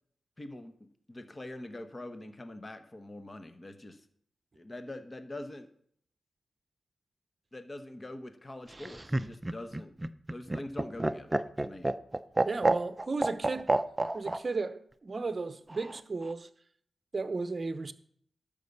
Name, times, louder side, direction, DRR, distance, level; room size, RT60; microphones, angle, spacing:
voice 1, 0.4-4.1 4.5-5.7 7.5-9.9 10.3-11.9, left 1 dB, 30° left, 0.9 m, -44 dB
Laughter, 8.7-14.4 15.7-16.3, right 2 dB, 20° right, 0.5 m, -29 dB
voice 2, 12.4-13.7 14.1-16.5 17.1-17.9, right 3 dB, 40° right, 0.8 m, -34 dB
12.0 x 5.3 x 7.0 m
cardioid pair, 85°, 0 cm